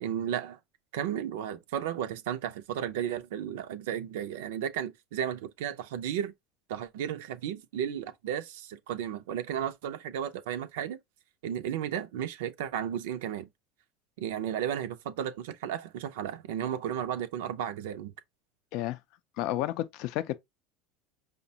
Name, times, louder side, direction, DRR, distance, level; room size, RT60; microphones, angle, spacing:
voice 1, 0.0-0.6 0.9-6.3 6.7-11.0 11.4-13.5 14.2-18.1, right 9 dB, 80° right, 0.4 m, -34 dB
voice 2, 19.4-20.4, left 14 dB, 60° left, 0.4 m, -31 dB
5.0 x 2.1 x 2.7 m
supercardioid pair, 100°, 0 cm